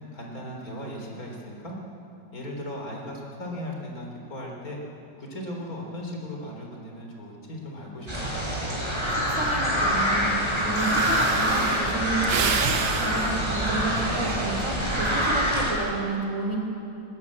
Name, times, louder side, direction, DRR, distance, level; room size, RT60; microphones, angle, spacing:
voice 1, 0.1-1.7 2.3-4.8 5.2-8.3, left 1 dB, 45° left, -1 dB, 3.9 m, -37 dB
sound 1, 8.1-15.7, equal, 15° right, 5.1 m, -25 dB
voice 2, 9.1-10.3 10.6-16.6, right 2 dB, 40° right, 1 dB, 3.1 m, -31 dB
Breathing, 10.4-10.5 10.7-15.0 15.5-15.8, right 7 dB, 85° right, 1.9 m, -31 dB
20.0 x 19.5 x 8.5 m, 2.8 s
omnidirectional pair, 2.1 m